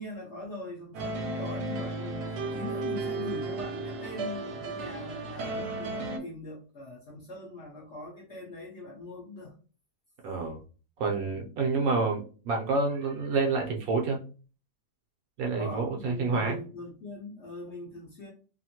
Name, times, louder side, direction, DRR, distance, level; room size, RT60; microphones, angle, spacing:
voice 1, 0.0-2.2 2.5-9.5 11.3-11.5 15.6-18.3, left 2 dB, 60° left, -2 dB, 0.8 m, -41 dB
sound 1, 0.9-6.2, right 2 dB, 80° right, 1.2 m, -34 dB
voice 2, 10.2-10.6 11.0-14.2 15.4-16.6, right 4 dB, 65° right, 1 dB, 1.0 m, -28 dB
2.8 x 2.5 x 2.8 m, 0.37 s
omnidirectional pair, 1.7 m